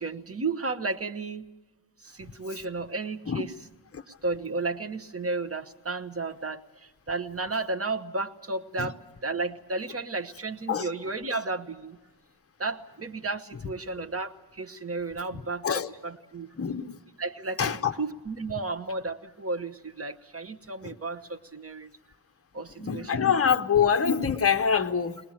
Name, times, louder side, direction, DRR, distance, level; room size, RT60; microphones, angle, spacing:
voice 1, 0.0-1.4 2.0-3.5 4.2-12.0 12.6-16.5 17.2-21.9 22.5-23.3, right 3 dB, 30° right, 0.9 m, -33 dB
voice 2, 16.6-17.0 17.6-17.9 20.8-20.9 22.8-25.2, left 7 dB, 30° left, 0.7 m, -25 dB
21.0 x 20.0 x 8.9 m
wide cardioid pair, 120°, 47 cm